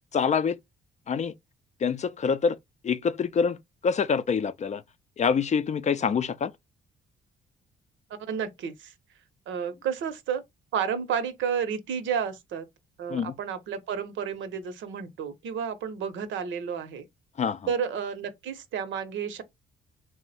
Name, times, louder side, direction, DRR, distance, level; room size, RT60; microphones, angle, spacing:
voice 1, 0.1-0.6 1.1-1.3 1.8-2.6 2.8-3.6 3.8-4.8 5.2-6.5 13.1-13.3 17.4-17.7, left 6 dB, 35° left, 0.4 m, -25 dB
voice 2, 8.2-8.9 9.5-10.4 10.7-12.7 13.0-17.0 17.7-19.4, right 7 dB, 75° right, 0.8 m, -31 dB
3.6 x 2.1 x 4.1 m
cardioid pair, 90°, 20 cm